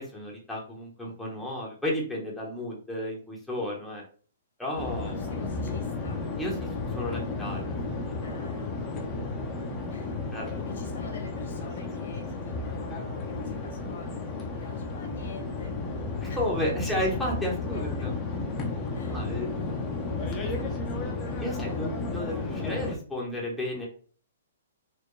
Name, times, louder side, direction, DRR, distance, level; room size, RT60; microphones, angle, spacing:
voice 1, 0.0-4.0 4.6-5.2 6.4-6.7 6.9-7.6 10.3-10.6 16.2-18.1 19.0-19.5 21.4-23.9, left 1 dB, 5° left, -4 dB, 1.0 m, -32 dB
voice 2, 1.0-1.5 5.0-6.2 8.2-9.2 9.9-10.1 10.4-16.0 16.3-16.4 17.7-18.1 18.4-18.5 18.9-21.8, left 4 dB, 75° left, 2 dB, 1.6 m, -47 dB
sound 1, 4.8-23.0, left 3 dB, 25° left, 0.8 m, -33 dB
4.3 x 2.2 x 3.2 m, 0.43 s
hypercardioid pair, 135°, 0 cm